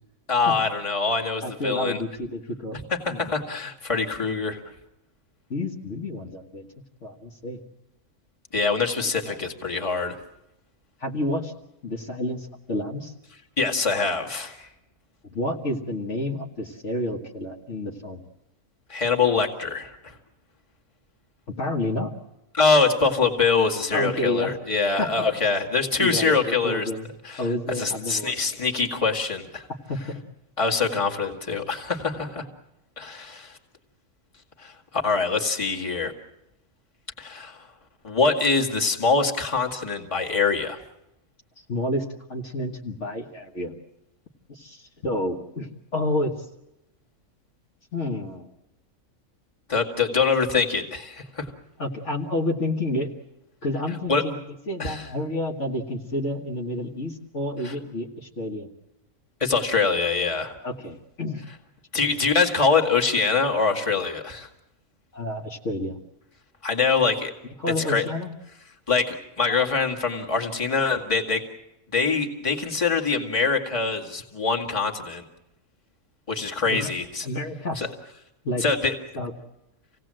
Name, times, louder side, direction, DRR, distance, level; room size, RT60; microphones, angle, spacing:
voice 1, 0.3-2.0 3.0-4.6 8.5-10.2 13.6-14.7 18.9-20.1 22.5-26.9 27.2-27.5 27.8-29.6 30.6-32.4 33.0-33.5 34.6-36.1 37.2-37.7 38.0-40.8 49.7-51.5 54.1-54.2 54.8-55.1 57.6-57.7 59.4-60.5 61.9-64.5 66.6-67.3 67.8-68.1 68.9-71.4 71.9-75.2 76.3-77.3 77.8-77.9 78.6-78.9, left 4 dB, 20° left, 0 dB, 2.1 m, -24 dB
voice 2, 1.4-2.8 3.1-3.3 5.5-6.7 7.0-7.6 9.3-9.4 11.0-11.5 11.8-13.1 15.3-18.2 21.5-22.1 23.9-24.6 25.0-25.3 26.0-27.1 27.4-28.4 29.9-30.2 41.7-43.7 44.5-46.3 47.9-48.5 51.8-53.1 53.6-54.4 54.7-58.7 60.6-61.4 61.9-62.1 65.1-66.0 67.6-68.3 76.7-76.9 77.2-77.8 78.4-78.6 79.2-79.3, left 1 dB, 55° left, 0 dB, 1.9 m, -29 dB
27.0 x 17.5 x 7.7 m, 0.91 s
omnidirectional pair, 1.5 m